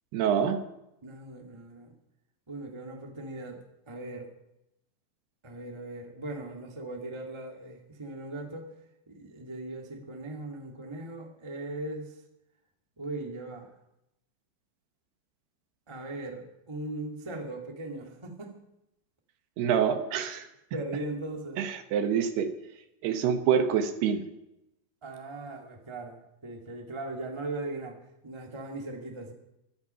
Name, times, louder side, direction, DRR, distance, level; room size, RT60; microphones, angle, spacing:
voice 1, 0.1-0.6 19.6-20.5 21.6-22.5 23.0-24.2, right 8 dB, 75° right, 9 dB, 3.2 m, -26 dB
voice 2, 1.0-1.9 2.5-3.6 3.9-4.3 5.4-8.7 9.1-12.2 13.0-13.7 15.9-18.6 20.7-21.6 25.0-28.0 28.2-29.3, right 2 dB, 20° right, 2 dB, 0.8 m, -39 dB
17.0 x 12.5 x 5.7 m, 0.86 s
omnidirectional pair, 4.9 m